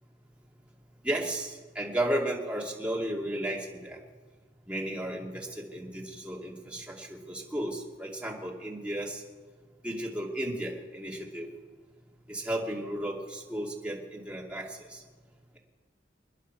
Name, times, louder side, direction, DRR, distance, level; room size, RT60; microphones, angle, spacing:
voice 1, 1.0-4.0 4.7-9.2 9.8-11.5 12.3-15.0, right 1 dB, 5° right, -2 dB, 2.5 m, -34 dB
27.5 x 10.5 x 4.7 m, 1.4 s
head